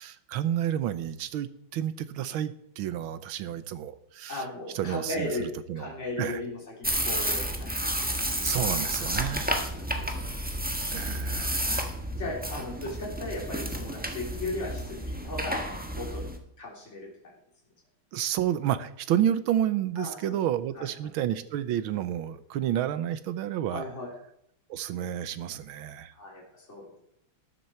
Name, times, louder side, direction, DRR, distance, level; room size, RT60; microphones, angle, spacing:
voice 1, 0.0-4.4 4.7-6.4 8.4-9.5 10.9-12.0 18.1-23.8 24.7-26.1, right 11 dB, 85° right, 13 dB, 1.6 m, -30 dB
voice 2, 4.3-5.5 5.8-7.7 8.0-8.1 9.2-10.2 12.1-15.6 15.9-16.2 16.6-17.1 20.0-20.4 20.8-20.9 23.7-24.1 26.1-26.8, left 2 dB, 35° left, -2 dB, 3.9 m, -36 dB
sound 1, 6.8-16.4, equal, 5° right, 1.1 m, -31 dB
13.5 x 11.0 x 4.4 m, 0.74 s
omnidirectional pair, 2.2 m